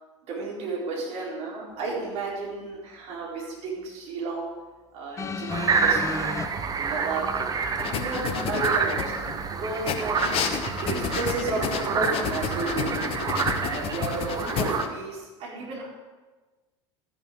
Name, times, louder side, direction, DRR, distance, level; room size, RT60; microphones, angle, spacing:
voice 1, 0.3-4.5 4.9-6.3 6.8-7.4 7.8-9.1 9.6-10.2 10.8-13.1 13.6-15.9, right 3 dB, 45° right, -4 dB, 4.3 m, -32 dB
sound 1, 5.2-6.5 7.5-7.6, left 4 dB, 20° left, 0.7 m, -33 dB
sound 2, 5.5-14.8, right 5 dB, 25° right, 1.0 m, -28 dB
sound 3, 7.8-9.4 9.8-14.9, left 7 dB, 40° left, 1.1 m, -31 dB
13.0 x 10.5 x 3.9 m, 1.3 s
figure-of-eight pair, 75°, 15 cm